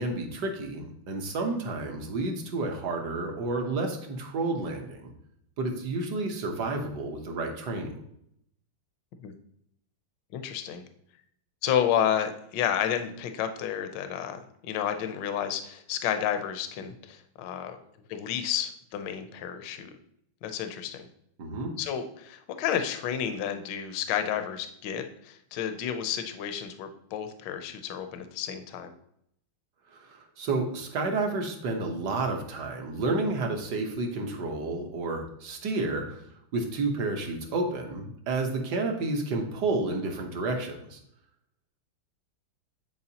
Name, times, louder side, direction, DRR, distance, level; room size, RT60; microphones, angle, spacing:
voice 1, 0.0-5.1 5.6-7.9 21.4-21.7 29.9-36.2 36.5-41.0, right 3 dB, 60° right, 3 dB, 1.5 m, -30 dB
voice 2, 10.3-10.8 11.6-17.8 18.1-19.9 20.4-21.1 21.8-28.9, left 9 dB, 70° left, 8 dB, 1.2 m, -31 dB
9.7 x 4.5 x 2.8 m, 0.74 s
omnidirectional pair, 2.3 m